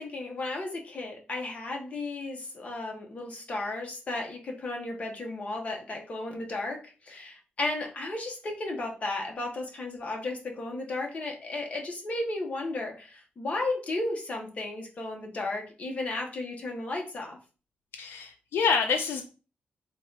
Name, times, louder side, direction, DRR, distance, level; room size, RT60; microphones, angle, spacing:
voice 1, 0.0-17.4, left 2 dB, 40° left, 1 dB, 1.1 m, -34 dB
voice 2, 17.9-19.2, left 5 dB, 85° left, 4 dB, 0.5 m, -27 dB
3.9 x 2.5 x 4.6 m, 0.35 s
wide cardioid pair, 125°, 4 cm